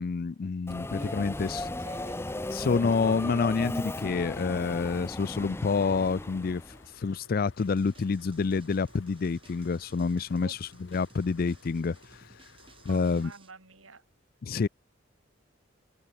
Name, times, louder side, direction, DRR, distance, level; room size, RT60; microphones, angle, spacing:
voice 1, 0.0-1.6 2.5-6.6 7.0-10.6 10.9-12.0 12.9-13.3 14.4-14.7, left 4 dB, 45° left, 0.4 m, -28 dB
Subway metro underground, 0.7-6.9, left 1 dB, 10° left, 0.7 m, -36 dB
sound 1, 0.9-13.4, left 3 dB, 65° left, 6.7 m, -56 dB
voice 2, 1.0-1.3 1.6-2.2 10.4-10.5 12.9-14.0, right 3 dB, 90° right, 4.2 m, -48 dB
sound 2, 7.6-13.5, right 3 dB, 25° right, 3.4 m, -58 dB
head